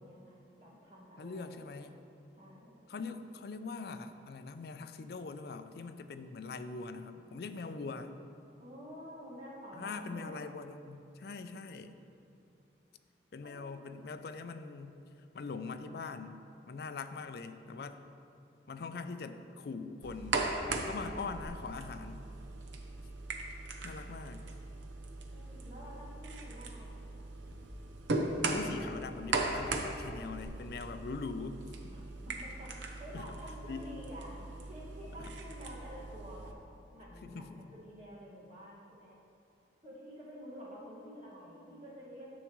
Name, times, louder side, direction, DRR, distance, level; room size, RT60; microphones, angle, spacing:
voice 1, 0.0-1.9 2.4-2.8 8.6-10.5 13.4-13.9 25.3-27.2 31.9-36.5 36.9-39.2 39.8-42.3, equal, 40° right, -6 dB, 1.8 m, -50 dB
voice 2, 1.2-2.0 2.9-8.1 9.7-12.0 13.3-15.0 15.3-16.4 16.7-18.0 18.7-20.4 20.7-22.3 23.8-24.4 28.4-31.9 33.1-33.4 33.7-33.9 35.2-35.3 37.2-37.6, left 4 dB, 60° left, 9 dB, 0.4 m, -42 dB
sound 1, 20.0-36.5, right 3 dB, 90° right, 0.7 m, -39 dB
10.0 x 7.2 x 3.1 m, 2.6 s
head